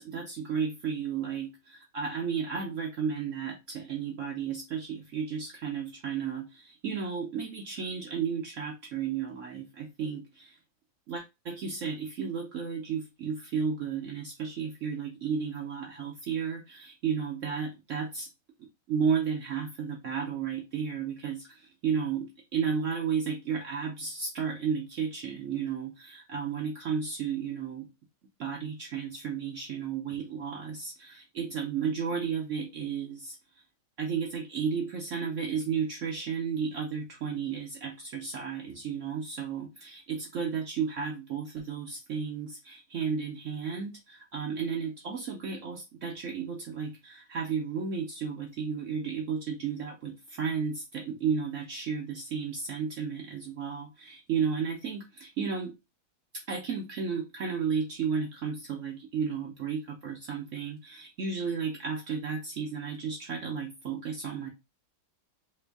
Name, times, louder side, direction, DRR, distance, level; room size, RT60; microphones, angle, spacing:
voice 1, 0.0-10.6 11.1-18.3 18.6-27.9 28.4-33.6 34.0-55.8 56.3-64.5, right 6 dB, 65° right, 0.7 m, -33 dB
3.1 x 2.5 x 3.4 m
omnidirectional pair, 1.9 m